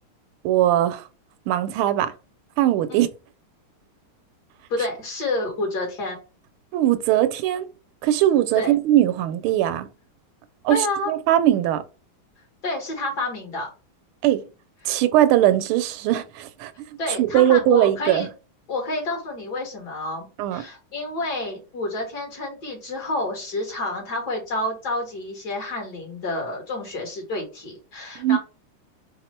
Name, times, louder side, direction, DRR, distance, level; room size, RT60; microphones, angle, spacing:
voice 1, 0.4-1.0 1.5-2.1 2.6-3.1 6.7-7.7 8.0-9.9 10.6-11.8 14.2-14.4 14.8-16.7 17.2-18.3 20.4-20.6 28.2-28.4, right 12 dB, 85° right, 1.4 m, -20 dB
voice 2, 4.7-6.2 8.6-8.7 10.7-11.1 12.6-13.7 14.8-14.9 17.0-18.3 18.7-20.3 20.5-28.4, left 2 dB, 50° left, 2.2 m, -29 dB
4.2 x 2.4 x 4.3 m
omnidirectional pair, 2.3 m